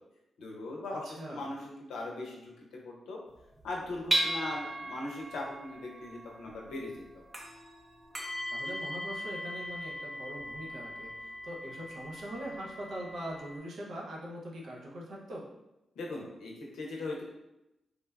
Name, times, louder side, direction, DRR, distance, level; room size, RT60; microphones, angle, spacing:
voice 1, 0.4-2.5 2.8-3.2 3.6-7.2 16.0-17.2, left 2 dB, 85° left, -2 dB, 0.6 m, -39 dB
voice 2, 1.0-1.5 8.5-15.4, right 1 dB, 75° right, -3 dB, 0.6 m, -42 dB
sound 1, 3.3-13.6, equal, 20° right, 0.5 m, -38 dB
3.1 x 2.1 x 2.2 m, 0.92 s
cardioid pair, 55°, 0 cm